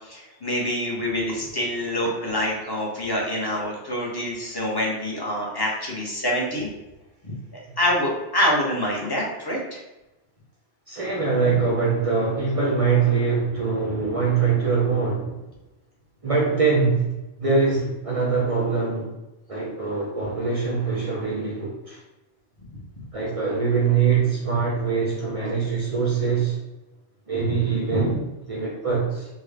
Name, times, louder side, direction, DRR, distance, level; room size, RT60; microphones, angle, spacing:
voice 1, 0.1-6.7 7.8-9.6, left 1 dB, 25° left, -3 dB, 0.7 m, -26 dB
voice 2, 10.9-15.4 16.2-19.1 19.5-22.0 23.1-26.6 27.3-29.3, right 5 dB, 40° right, -3 dB, 0.5 m, -23 dB
3.6 x 2.2 x 3.3 m, 1.0 s
omnidirectional pair, 1.2 m